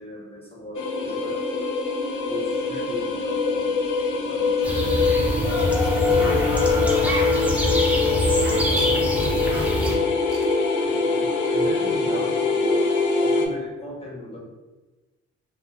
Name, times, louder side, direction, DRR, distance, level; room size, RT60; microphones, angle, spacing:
voice 1, 0.0-1.8 2.3-5.2 5.5-10.2 10.8-14.4, left 1 dB, 15° left, -3 dB, 1.1 m, -38 dB
sound 1, 0.7-13.5, left 4 dB, 65° left, 0.5 m, -23 dB
sound 2, 4.6-9.9, equal, 5° right, 0.7 m, -25 dB
sound 3, 5.6-8.0 8.7-9.5 9.8-10.0 10.3-10.5, right 3 dB, 45° right, 0.7 m, -43 dB
2.8 x 2.4 x 2.4 m, 1.2 s
hypercardioid pair, 45°, 33 cm